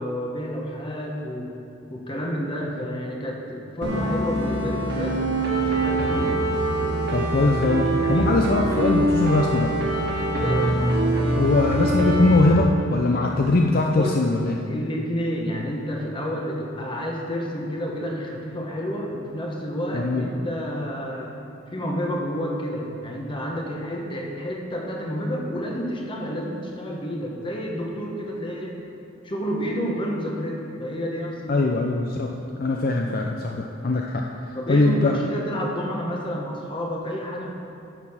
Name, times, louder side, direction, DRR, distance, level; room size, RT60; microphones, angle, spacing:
voice 1, 0.0-1.5 1.9-6.4 7.3-8.4 10.3-10.8 14.0-14.2 14.7-21.4 21.7-28.7 29.2-31.7 34.5-37.5, equal, 25° left, -1 dB, 1.2 m, -30 dB
sound 1, 3.8-12.6, right 1 dB, 60° right, 1.4 m, -24 dB
voice 2, 7.1-9.7 11.4-14.8 19.9-20.2 31.5-32.3 32.6-34.2 34.7-35.2, left 2 dB, 50° left, 1 dB, 0.5 m, -21 dB
10.0 x 6.8 x 5.7 m, 2.6 s
head